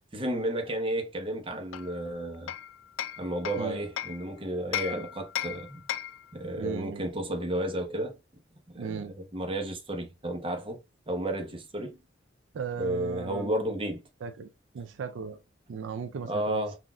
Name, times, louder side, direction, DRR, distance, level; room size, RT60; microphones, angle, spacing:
voice 1, 0.1-2.5 3.2-5.9 6.3-8.2 8.7-10.8 11.1-12.0 12.8-14.0 16.2-16.8, right 1 dB, 30° right, 0.8 m, -32 dB
Hammer, 1.7-4.2 4.7-6.3, left 11 dB, 85° left, 0.3 m, -36 dB
voice 2, 6.6-7.1 8.8-9.1 12.5-13.5 14.2-14.5 14.7-15.4 15.7-16.6, right 6 dB, 75° right, 0.4 m, -36 dB
5.9 x 2.5 x 2.3 m
head